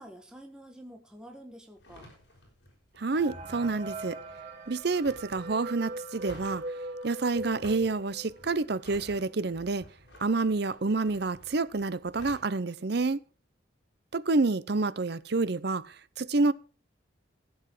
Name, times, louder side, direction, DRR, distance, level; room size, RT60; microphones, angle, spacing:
voice 1, 0.0-2.1, right 1 dB, 5° right, 1.5 m, -48 dB
sound 1, 1.8-12.6, left 1 dB, 60° left, 5.9 m, -53 dB
voice 2, 3.0-4.2 4.7-6.6 7.0-9.8 10.2-13.2 14.1-16.5, right 3 dB, 55° right, 0.6 m, -28 dB
sound 2, 3.1-8.6 9.0-9.1 9.3-9.5 10.2-10.3 10.7-11.0, right 2 dB, 35° right, 1.2 m, -41 dB
Wind instrument woodwind instrument, 3.5-7.5, right 2 dB, 75° right, 3.1 m, -56 dB
15.5 x 8.1 x 4.8 m
head